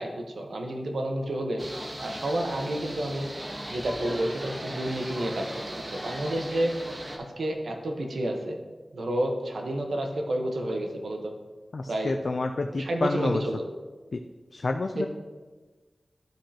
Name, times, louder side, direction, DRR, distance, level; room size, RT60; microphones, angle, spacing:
voice 1, 0.0-1.6 2.0-3.3 3.7-6.7 7.2-8.6 8.9-11.3 11.9-12.1 12.7-13.6 15.0-15.1, right 1 dB, 80° right, 2 dB, 1.1 m, -30 dB
sound 1, 1.6-7.2, right 1 dB, 35° right, 1.3 m, -38 dB
voice 2, 11.7-13.4 14.1-14.2 14.5-15.1, left 3 dB, 70° left, 5 dB, 0.4 m, -29 dB
12.0 x 5.2 x 2.9 m, 1.3 s
cardioid pair, 45°, 0 cm